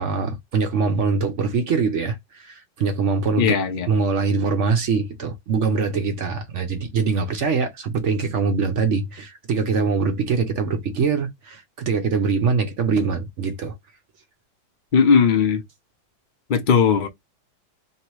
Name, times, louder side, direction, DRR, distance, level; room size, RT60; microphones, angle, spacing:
voice 1, 0.0-3.6 3.9-13.7, right 5 dB, 60° right, 0.8 m, -23 dB
voice 2, 3.4-3.9 14.9-15.6 16.5-17.1, left 6 dB, 65° left, 0.5 m, -17 dB
3.2 x 2.9 x 4.6 m
omnidirectional pair, 2.1 m